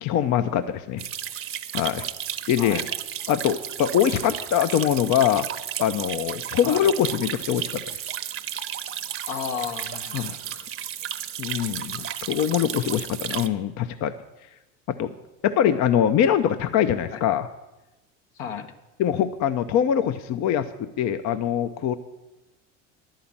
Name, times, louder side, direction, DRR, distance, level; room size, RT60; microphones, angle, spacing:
voice 1, 0.0-1.1 1.7-2.1 2.5-2.8 3.3-5.5 5.8-7.7 10.1-10.4 11.4-14.1 14.9-15.1 15.4-17.5 19.0-22.0, left 9 dB, 50° left, 11 dB, 0.6 m, -23 dB
sound 1, 1.0-13.5, right 10 dB, 35° right, 0.8 m, -33 dB
voice 2, 9.3-10.4 17.1-17.2 18.3-18.7, left 7 dB, 75° left, 7 dB, 1.2 m, -33 dB
11.0 x 5.7 x 8.7 m, 1.0 s
hypercardioid pair, 80°, 36 cm